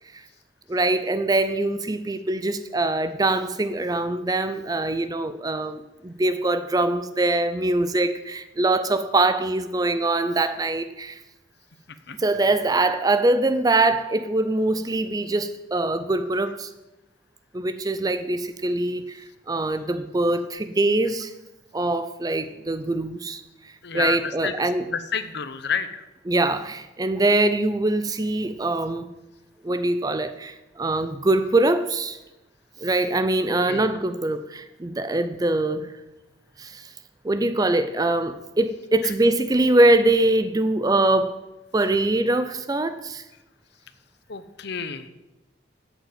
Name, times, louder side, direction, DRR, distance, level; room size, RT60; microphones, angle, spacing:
voice 1, 0.7-11.2 12.2-16.7 17.5-21.3 21.7-23.4 23.9-24.9 26.3-29.1 29.6-32.2 32.8-35.9 36.6-36.9 37.2-41.4 41.7-43.2, right 2 dB, 20° right, 0.4 m, -23 dB
voice 2, 23.8-26.0 33.7-33.9 39.0-39.1 44.3-45.1, left 6 dB, 55° left, 0.8 m, -30 dB
8.3 x 8.0 x 7.9 m
head